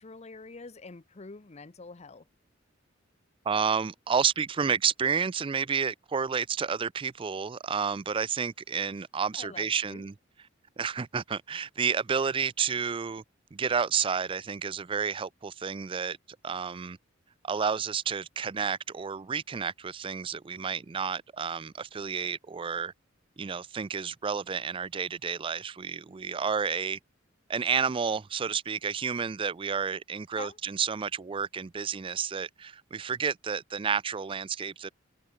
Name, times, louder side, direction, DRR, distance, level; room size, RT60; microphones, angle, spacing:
voice 1, 0.0-2.2 9.3-10.0 30.3-30.6, left 4 dB, 35° left, 0.7 m, -46 dB
voice 2, 3.4-10.1 10.8-13.2 13.5-16.2 16.4-17.0 17.4-22.9 23.4-27.0 27.5-34.9, right 6 dB, 25° right, 0.4 m, -30 dB
head